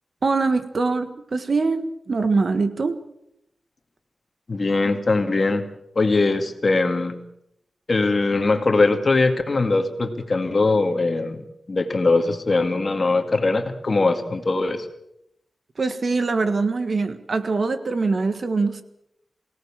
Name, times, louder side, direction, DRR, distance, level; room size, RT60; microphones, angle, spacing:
voice 1, 0.2-3.0 15.8-18.8, right 3 dB, 45° right, 10 dB, 1.5 m, -23 dB
voice 2, 4.5-5.7 6.0-7.1 7.9-14.9, left 3 dB, 40° left, 6 dB, 2.2 m, -21 dB
23.0 x 18.0 x 7.3 m, 0.79 s
wide cardioid pair, 145°, 0 cm